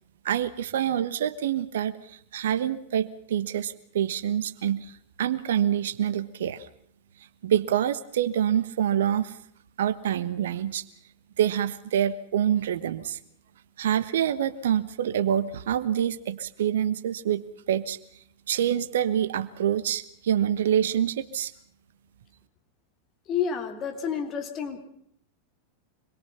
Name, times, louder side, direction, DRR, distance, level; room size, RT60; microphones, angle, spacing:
voice 1, 0.2-2.0 2.3-4.8 5.2-6.6 7.4-9.3 9.8-10.8 11.4-13.2 13.8-18.0 18.5-21.5, right 10 dB, 60° right, 14 dB, 1.2 m, -26 dB
voice 2, 23.3-24.8, left 7 dB, 30° left, 4 dB, 3.5 m, -29 dB
26.0 x 22.0 x 5.7 m, 0.65 s
figure-of-eight pair, 90°, 0 cm